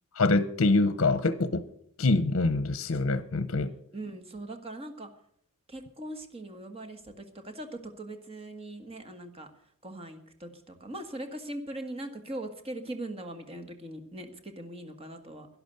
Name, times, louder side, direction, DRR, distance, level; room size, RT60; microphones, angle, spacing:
voice 1, 0.1-1.6 2.0-3.7, left 3 dB, 65° left, 13 dB, 0.7 m, -25 dB
voice 2, 3.9-5.1 5.7-9.5 9.8-15.5, right 1 dB, 30° right, 6 dB, 1.6 m, -40 dB
12.0 x 11.0 x 6.7 m, 0.67 s
head